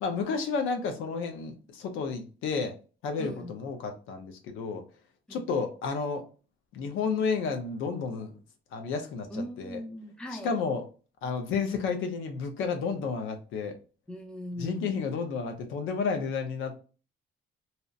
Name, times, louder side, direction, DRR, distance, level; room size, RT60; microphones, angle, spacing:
voice 1, 0.0-2.7 3.0-4.8 5.3-6.2 6.7-8.4 8.7-9.8 10.3-10.8 11.2-13.8 14.6-16.7, left 5 dB, 90° left, 0.6 m, -31 dB
voice 2, 3.2-3.5 5.3-5.6 9.3-10.5 14.1-14.9, equal, 5° left, 0.5 m, -39 dB
2.8 x 2.0 x 2.3 m
cardioid pair, 90°, 20 cm